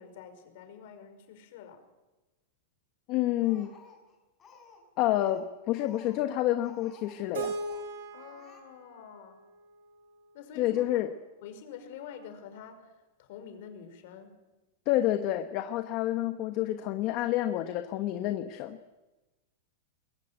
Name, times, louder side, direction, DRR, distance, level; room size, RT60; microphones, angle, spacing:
voice 1, 0.0-1.8 8.1-9.4 10.3-10.9 11.4-14.4, left 7 dB, 55° left, 8 dB, 5.0 m, -47 dB
voice 2, 3.1-3.8 5.0-7.5 10.6-11.1 14.9-18.8, left 14 dB, 35° left, 8 dB, 1.2 m, -29 dB
Speech, 3.4-4.9 5.1-7.2 7.5-7.9 8.2-8.6, left 5 dB, 20° left, 5.3 m, -55 dB
Keyboard (musical), 7.3-10.3, right 3 dB, 80° right, 4.4 m, -39 dB
21.5 x 21.5 x 9.1 m, 1.1 s
supercardioid pair, 165°, 0 cm